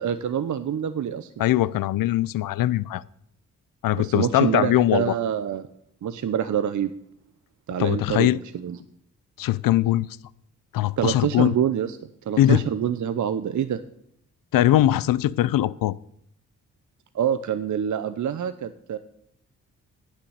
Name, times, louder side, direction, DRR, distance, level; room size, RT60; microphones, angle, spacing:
voice 1, 0.0-1.4 3.9-5.7 6.0-6.9 7.7-8.8 11.0-12.0 12.3-13.8 17.1-19.0, right 9 dB, 55° right, 12 dB, 0.8 m, -26 dB
voice 2, 1.4-3.0 3.8-5.1 7.8-8.4 9.4-10.2 10.7-11.5 12.4-12.6 14.5-15.9, left 14 dB, 70° left, 19 dB, 0.6 m, -21 dB
9.9 x 6.0 x 8.2 m, 0.71 s
supercardioid pair, 45°, 35 cm